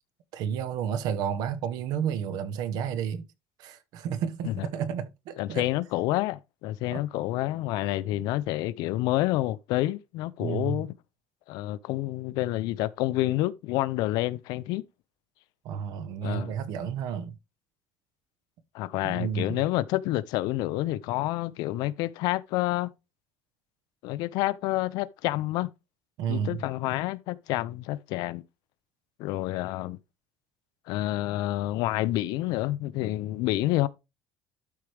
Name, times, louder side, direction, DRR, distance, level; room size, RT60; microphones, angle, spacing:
voice 1, 0.3-3.3 3.6-5.7 6.9-7.0 10.4-10.8 15.6-17.4 19.0-19.6 26.2-26.6, right 8 dB, 60° right, 1.2 m, -31 dB
voice 2, 5.4-10.9 11.5-14.8 16.2-16.5 18.7-22.9 24.0-25.7 26.3-28.4 29.2-30.0 30.9-33.9, left 16 dB, 70° left, 0.6 m, -28 dB
12.0 x 4.7 x 3.4 m
cardioid pair, 150°, 7 cm